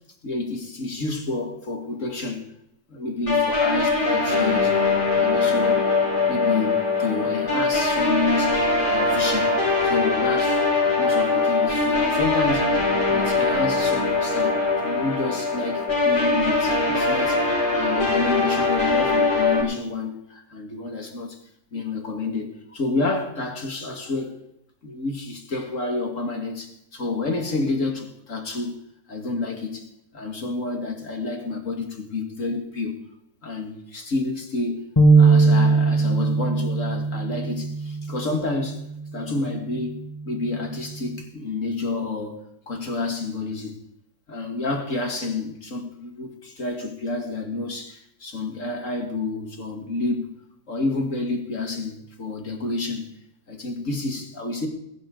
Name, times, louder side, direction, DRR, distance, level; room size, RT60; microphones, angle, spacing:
voice 1, 0.2-2.5 2.9-4.8 5.1-5.9 6.3-10.6 11.0-17.5 17.7-21.4 21.7-24.4 24.8-28.8 29.1-29.9 30.1-33.0 33.4-34.8 35.2-38.8 39.1-40.0 40.3-43.8 44.3-50.3 50.7-53.1 53.5-54.7, left 3 dB, 50° left, 2.4 m, -29 dB
sound 1, 3.3-19.6, left 3 dB, 85° left, 6.1 m, -22 dB
sound 2, 35.0-41.2, right 3 dB, 15° left, 1.2 m, -21 dB
21.0 x 12.0 x 3.9 m
omnidirectional pair, 1.7 m